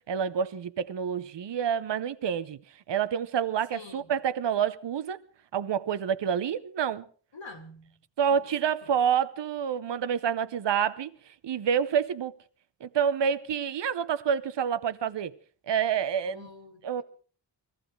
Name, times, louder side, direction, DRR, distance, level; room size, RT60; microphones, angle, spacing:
voice 1, 0.1-2.6 2.9-5.2 5.5-7.0 8.2-11.1 11.4-12.3 12.8-15.3 15.7-16.5 16.8-17.0, right 8 dB, 70° right, 0.8 m, -28 dB
voice 2, 3.7-4.1 7.3-8.0 8.3-8.9 16.2-17.0, left 3 dB, 85° left, 2.9 m, -47 dB
21.0 x 15.0 x 4.6 m
cardioid pair, 60°, 44 cm